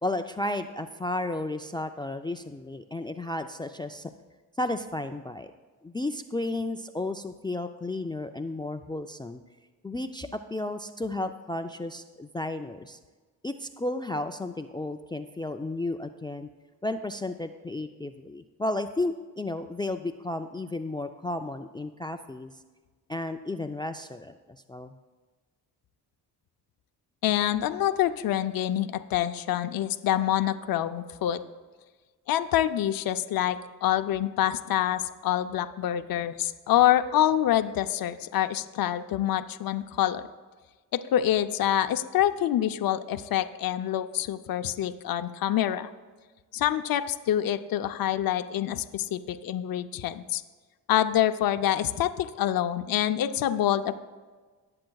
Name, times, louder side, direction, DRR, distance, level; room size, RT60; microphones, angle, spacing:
voice 1, 0.0-4.1 4.6-5.5 5.8-9.4 9.8-13.0 13.4-16.5 16.8-22.5 23.1-25.0, left 2 dB, 10° left, 8 dB, 0.3 m, -33 dB
voice 2, 27.2-31.4 32.3-40.2 40.9-45.9 46.5-50.4 50.9-54.0, left 11 dB, 60° left, 9 dB, 0.6 m, -26 dB
18.5 x 7.6 x 2.3 m, 1.4 s
cardioid pair, 75°, 39 cm